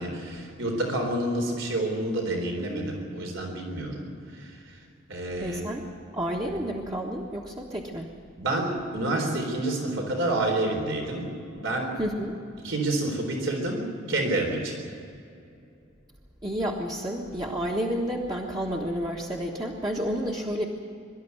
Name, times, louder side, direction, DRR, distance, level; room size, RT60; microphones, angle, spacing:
voice 1, 0.0-4.8 5.1-5.6 8.4-12.0 12.6-14.7, right 1 dB, 70° right, 2 dB, 4.0 m, -29 dB
voice 2, 5.4-5.9 6.1-8.1 12.0-12.3 16.4-20.7, equal, 20° right, -1 dB, 1.5 m, -30 dB
24.0 x 13.0 x 9.6 m, 2.6 s
head